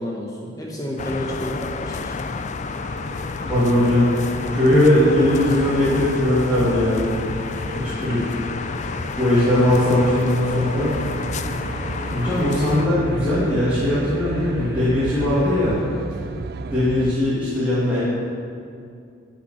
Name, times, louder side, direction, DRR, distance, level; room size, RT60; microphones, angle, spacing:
voice 1, 0.0-2.2 9.9-10.0, equal, 15° left, -2 dB, 1.0 m, -30 dB
sound 1, 1.0-12.9, left 4 dB, 35° left, 0.4 m, -30 dB
sound 2, 2.7-15.6, equal, 65° right, 3.5 m, -38 dB
voice 2, 3.5-4.1 4.5-7.2 7.7-8.3 9.2-11.0 12.1-15.8 16.7-18.0, left 1 dB, 5° right, -13 dB, 2.5 m, -19 dB
Aircraft, 10.4-17.2, right 3 dB, 45° right, 0.4 m, -33 dB
12.0 x 5.8 x 8.4 m, 2.4 s
head